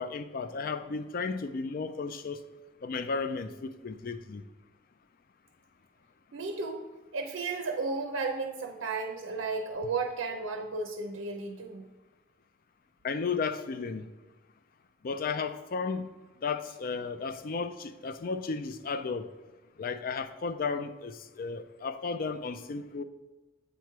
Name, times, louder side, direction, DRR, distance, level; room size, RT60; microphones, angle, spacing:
voice 1, 0.0-2.4 2.8-4.4 13.0-14.1 15.0-16.1 16.4-19.3 19.8-23.0, left 4 dB, 45° left, 0.4 m, -34 dB
voice 2, 6.3-6.8 7.1-11.9, right 4 dB, 90° right, 0.6 m, -34 dB
8.2 x 3.1 x 4.6 m
head